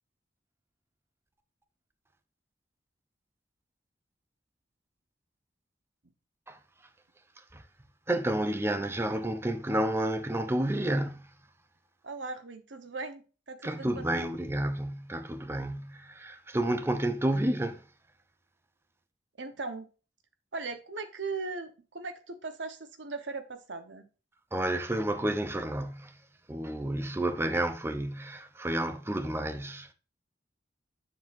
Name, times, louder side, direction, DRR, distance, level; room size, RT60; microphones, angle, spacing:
voice 1, 8.1-11.3 13.6-17.8 24.5-26.2 26.5-29.9, right 1 dB, 15° right, 0.6 m, -30 dB
voice 2, 12.0-14.2 19.4-19.9 20.5-24.1, right 3 dB, 85° right, 1.1 m, -39 dB
7.7 x 7.2 x 2.6 m
head